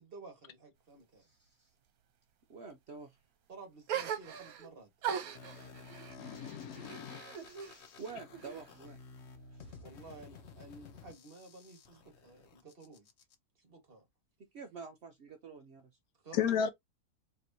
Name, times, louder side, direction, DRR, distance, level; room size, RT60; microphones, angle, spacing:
voice 1, 0.0-1.2 3.5-4.9 9.8-13.1 13.6-14.0 16.2-16.6, right 3 dB, 40° right, 1.4 m, -53 dB
voice 2, 1.2-1.7 2.5-3.2 5.4-5.7 7.6-9.0 9.5-9.9 14.5-15.9, right 5 dB, 60° right, 0.7 m, -48 dB
sound 1, 3.9-4.7 5.0-7.8 8.1-8.9, right 8 dB, 75° right, 1.2 m, -40 dB
sound 2, 5.3-13.3, left 4 dB, 55° left, 0.9 m, -53 dB
voice 3, 6.2-7.2 16.3-16.7, left 8 dB, 75° left, 1.1 m, -33 dB
4.5 x 3.0 x 2.6 m
omnidirectional pair, 1.6 m